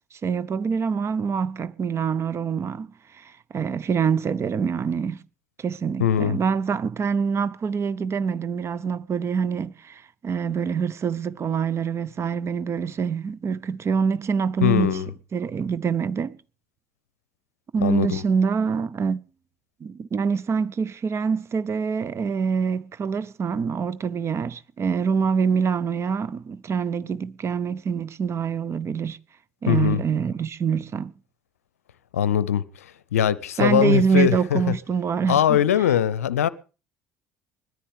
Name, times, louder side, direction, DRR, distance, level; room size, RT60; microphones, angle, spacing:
voice 1, 0.2-5.2 5.6-15.0 15.3-16.4 17.7-19.3 19.8-29.2 29.6-31.1 33.6-35.6, right 6 dB, 35° right, 0.8 m, -25 dB
voice 2, 6.0-6.4 14.6-15.1 17.8-18.2 29.7-30.0 32.1-32.6 33.1-34.6 35.3-36.5, left 9 dB, 75° left, 0.6 m, -21 dB
20.0 x 14.0 x 3.5 m
figure-of-eight pair, 55°, 8 cm